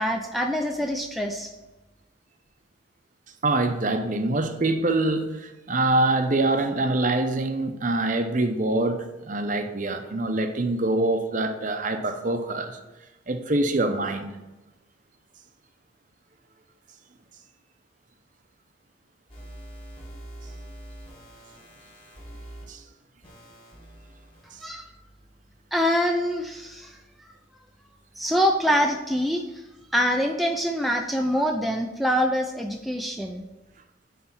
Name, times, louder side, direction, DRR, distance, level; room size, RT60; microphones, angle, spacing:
voice 1, 0.0-1.5 24.6-24.9 25.7-27.0 28.2-29.4 29.9-33.4, equal, ahead, 0.4 m, -25 dB
voice 2, 3.4-12.8 13.3-14.4 22.7-22.8, right 2 dB, 40° right, 0.7 m, -25 dB
sound 1, 19.3-22.6 23.2-24.6, right 1 dB, 25° left, 2.0 m, -44 dB
9.5 x 3.3 x 6.0 m
head